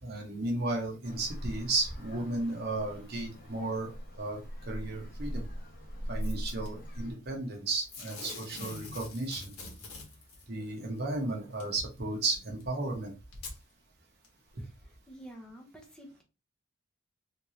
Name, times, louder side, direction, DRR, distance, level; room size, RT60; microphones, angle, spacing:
voice 1, 0.0-4.4 4.7-5.5 6.1-9.6 10.5-13.1, right 2 dB, 45° right, 0 dB, 1.1 m, -34 dB
Traffic noise roadway noise, 1.0-7.1, equal, 40° left, 0.8 m, -40 dB
Packing tape duct tape / Tearing, 6.2-6.7 7.9-10.4 11.6-11.7 12.6-12.7 13.3-13.6 14.2-14.3, left 3 dB, 85° left, 1.4 m, -44 dB
voice 2, 14.6-16.2, right 1 dB, 5° left, 0 dB, 0.9 m, -50 dB
3.5 x 2.8 x 3.2 m, 0.29 s
head